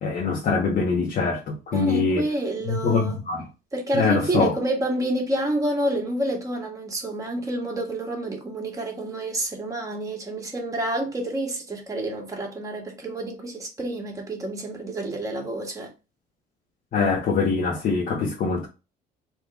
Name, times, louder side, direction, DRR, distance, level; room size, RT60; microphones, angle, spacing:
voice 1, 0.0-2.2 2.7-3.4 3.9-4.5 16.9-18.7, left 4 dB, 55° left, 1.3 m, -23 dB
voice 2, 1.7-3.2 3.7-15.9, right 1 dB, 20° right, 1.8 m, -28 dB
3.4 x 3.3 x 4.1 m
cardioid pair, 110°, 17 cm